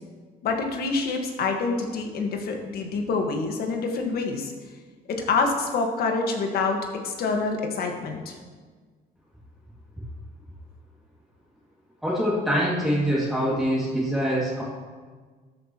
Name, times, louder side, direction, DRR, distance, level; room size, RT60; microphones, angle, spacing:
voice 1, 0.4-4.5 5.1-8.4, left 4 dB, 65° left, 3 dB, 1.7 m, -26 dB
voice 2, 12.0-14.6, equal, ahead, -7 dB, 2.4 m, -24 dB
12.5 x 9.9 x 3.1 m, 1.5 s
cardioid pair, 110°, 17 cm